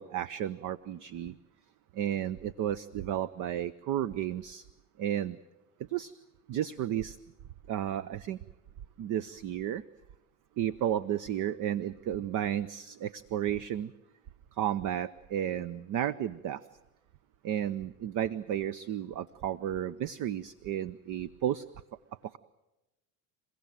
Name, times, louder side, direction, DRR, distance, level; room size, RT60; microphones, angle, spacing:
voice 1, 0.0-1.4 1.9-4.6 5.0-5.4 5.9-6.1 6.5-7.2 7.7-8.4 9.0-9.8 10.6-13.9 14.6-16.6 17.4-21.6, right 11 dB, 45° right, 18 dB, 0.8 m, -32 dB
29.0 x 16.0 x 9.1 m, 1.0 s
hypercardioid pair, 75°, 43 cm